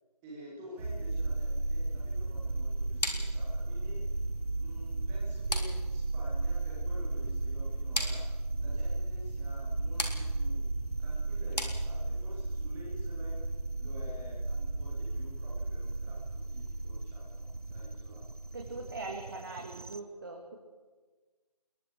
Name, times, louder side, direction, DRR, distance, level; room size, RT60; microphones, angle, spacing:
voice 1, 0.2-4.0 4.6-8.2 8.6-10.6 11.0-13.3 13.8-17.4 17.7-18.2, left 1 dB, ahead, -5 dB, 0.8 m, -50 dB
sound 1, 0.8-20.0, right 2 dB, 65° right, 1.3 m, -34 dB
sound 2, 3.0-12.4, left 1 dB, 80° left, 3.7 m, -41 dB
voice 2, 18.5-20.6, right 3 dB, 35° right, 1 dB, 2.2 m, -41 dB
28.0 x 21.5 x 4.5 m, 1.3 s
figure-of-eight pair, 165°, 21 cm